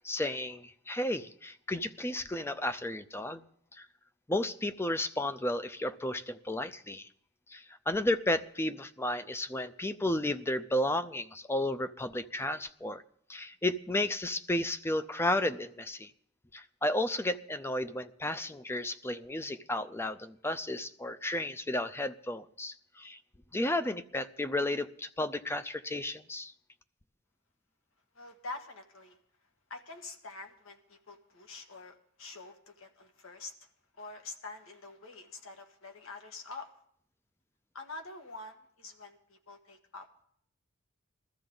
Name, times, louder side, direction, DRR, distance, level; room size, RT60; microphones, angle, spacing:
voice 1, 0.0-3.4 3.8-3.9 4.3-7.1 7.5-13.0 13.3-16.1 16.5-23.2 23.5-26.5, left 1 dB, 10° left, 12 dB, 0.5 m, -33 dB
voice 2, 28.2-29.2 29.7-33.5 34.0-36.7 37.7-40.2, left 3 dB, 80° left, 5 dB, 1.6 m, -46 dB
21.0 x 13.5 x 3.9 m, 0.66 s
head